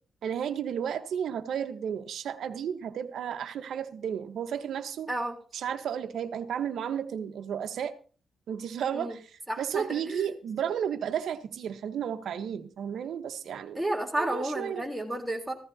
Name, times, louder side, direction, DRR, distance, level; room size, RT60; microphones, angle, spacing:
voice 1, 0.2-5.1 5.5-7.9 8.5-9.2 9.6-13.8 14.2-14.8, right 8 dB, 80° right, 1.1 m, -33 dB
voice 2, 5.1-5.4 8.9-9.2 9.5-10.3 13.7-15.5, right 1 dB, 10° right, 3.5 m, -32 dB
15.5 x 14.0 x 2.8 m
cardioid pair, 90°, 0 cm